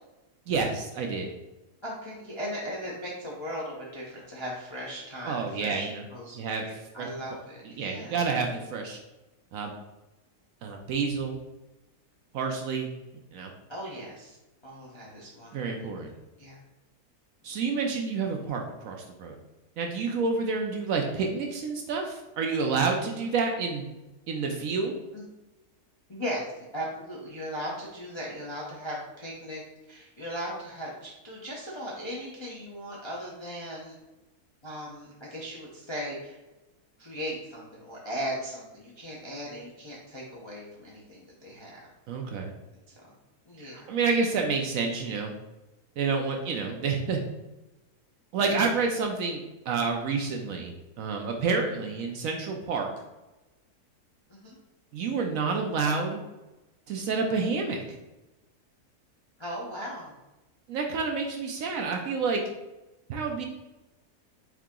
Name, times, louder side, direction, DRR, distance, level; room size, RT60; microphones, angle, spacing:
voice 1, 0.5-1.3 5.3-6.0 6.3-6.6 7.0-7.1 7.8-9.0 9.5-9.7 10.6-11.4 12.3-12.9 13.3-13.5 15.5-16.1 17.4-19.4 19.8-23.8 24.3-24.9 42.1-42.5 43.6-45.3 46.0-47.2 48.3-52.9 54.9-56.2 56.9-58.0 60.7-62.4 63.1-63.5, right 4 dB, 70° right, 2 dB, 0.8 m, -29 dB
voice 2, 1.8-8.2 13.7-14.4 14.6-15.6 16.4-16.6 25.1-25.2 26.1-29.6 29.9-34.0 34.6-36.4 37.0-41.8 42.9-43.2 43.5-43.9 46.4-46.6 48.7-48.8 54.3-54.6 59.4-60.1, equal, 35° left, -5 dB, 0.4 m, -38 dB
4.8 x 2.7 x 3.6 m, 1.0 s
omnidirectional pair, 1.7 m